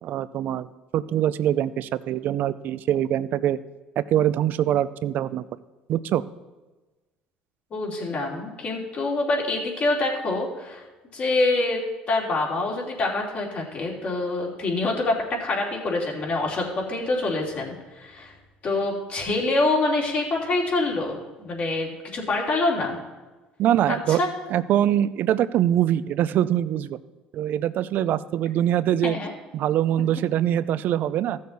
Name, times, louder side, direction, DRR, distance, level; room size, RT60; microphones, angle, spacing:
voice 1, 0.0-3.6 4.0-5.4 5.9-6.2 23.6-24.2 24.5-27.0 27.3-29.2 29.5-31.4, right 11 dB, 60° right, 16 dB, 0.4 m, -23 dB
voice 2, 7.7-10.8 11.1-11.8 12.1-18.3 18.6-23.0 23.9-24.3 29.0-29.3, left 2 dB, 45° left, -2 dB, 2.8 m, -26 dB
14.5 x 6.6 x 4.1 m, 1.2 s
supercardioid pair, 90°, 4 cm